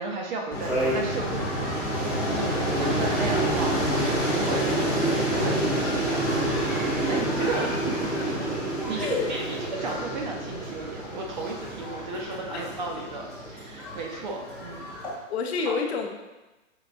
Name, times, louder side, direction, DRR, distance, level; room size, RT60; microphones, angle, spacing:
voice 1, 0.0-1.6 1.8-4.8 5.3-8.1 8.4-8.5 8.9-14.9, right 3 dB, 35° right, 1 dB, 0.6 m, -34 dB
sound 1, 0.5-15.1, right 1 dB, ahead, 0.7 m, -28 dB
voice 2, 2.2-2.6 8.2-8.3 9.0-9.3 12.5-12.7 15.3-16.2, left 5 dB, 55° left, 3 dB, 0.6 m, -30 dB
4.8 x 3.2 x 2.5 m, 1.1 s
hypercardioid pair, 150°, 39 cm